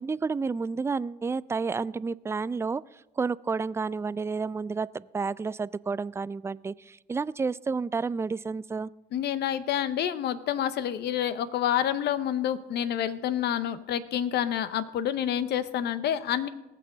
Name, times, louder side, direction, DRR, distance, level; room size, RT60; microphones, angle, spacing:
voice 1, 0.0-8.9, right 4 dB, 15° right, 19 dB, 0.3 m, -30 dB
voice 2, 9.1-16.5, left 10 dB, 65° left, 14 dB, 0.8 m, -28 dB
19.0 x 6.7 x 3.9 m, 1.0 s
supercardioid pair, 60°, 18 cm